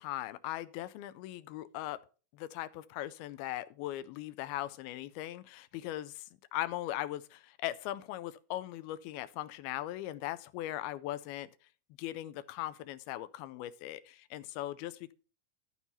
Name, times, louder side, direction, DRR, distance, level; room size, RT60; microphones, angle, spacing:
voice 1, 0.0-2.0 2.3-6.3 6.5-11.5 12.0-15.1, left 14 dB, 90° left, 2.5 m, -39 dB
12.5 x 4.6 x 5.4 m
omnidirectional pair, 4.3 m